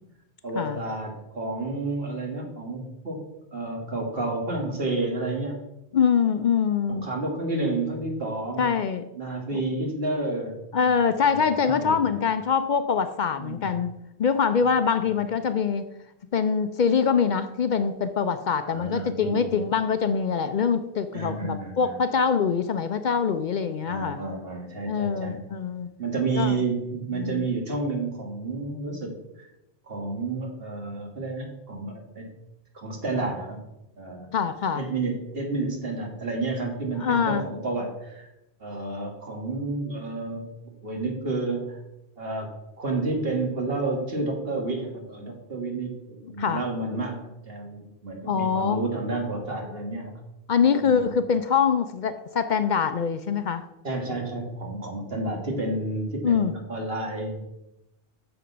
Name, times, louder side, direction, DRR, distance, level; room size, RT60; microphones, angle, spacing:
voice 1, 0.4-3.2 3.5-5.6 6.9-8.7 9.1-12.2 13.4-13.7 18.6-19.6 21.1-21.9 23.8-25.4 26.0-29.1 29.9-32.3 32.7-33.6 34.0-34.3 34.7-38.3 38.6-40.4 40.8-41.8 42.2-42.5 42.8-50.1 50.8-51.1 53.8-57.4, right 2 dB, 60° right, 1 dB, 2.0 m, -30 dB
voice 2, 5.9-7.1 8.6-9.0 9.5-9.6 10.7-13.9 14.2-15.9 16.3-24.2 24.9-25.9 26.4-26.6 27.1-27.5 34.3-34.8 37.0-37.4 46.4-46.6 48.3-48.8 50.5-53.6 56.2-56.5, left 6 dB, 55° left, 10 dB, 0.5 m, -24 dB
6.7 x 6.2 x 5.5 m, 0.90 s
omnidirectional pair, 1.1 m